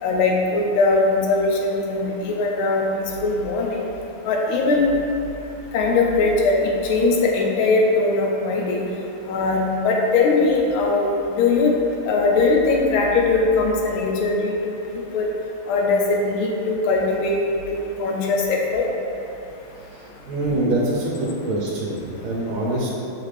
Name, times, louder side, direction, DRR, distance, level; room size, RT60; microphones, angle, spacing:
voice 1, 0.0-3.8 4.2-4.9 5.7-8.8 9.3-11.7 12.1-15.3 15.7-17.4 17.7-18.8, left 3 dB, 80° left, -1 dB, 1.4 m, -20 dB
voice 2, 20.3-22.9, right 1 dB, 80° right, -4 dB, 1.5 m, -24 dB
5.5 x 2.5 x 3.2 m, 2.9 s
omnidirectional pair, 2.3 m